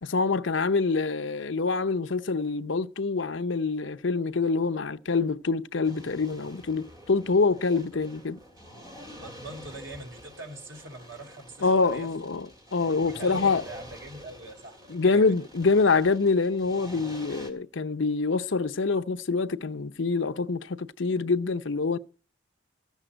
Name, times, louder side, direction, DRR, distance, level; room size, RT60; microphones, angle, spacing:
voice 1, 0.0-8.4 11.6-13.6 14.9-22.0, left 4 dB, 65° left, 0.7 m, -25 dB
sound 1, 5.8-17.5, equal, 20° right, 2.7 m, -47 dB
voice 2, 9.2-12.1 13.0-15.4, right 2 dB, 70° right, 4.4 m, -43 dB
14.5 x 7.2 x 8.9 m
head